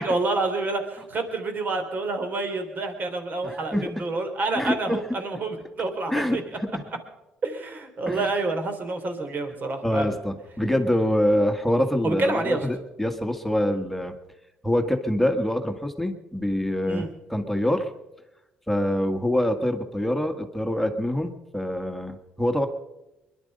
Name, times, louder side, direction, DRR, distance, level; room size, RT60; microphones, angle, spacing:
voice 1, 0.0-6.4 7.4-10.1 12.0-12.6 16.9-17.1, right 2 dB, 50° right, 6 dB, 3.3 m, -28 dB
voice 2, 3.4-3.9 4.5-5.0 6.1-6.8 8.1-8.3 9.8-14.2 14.6-17.9 18.7-22.7, left 1 dB, 5° left, 6 dB, 1.7 m, -25 dB
22.0 x 11.5 x 5.4 m, 0.97 s
supercardioid pair, 75°, 4 cm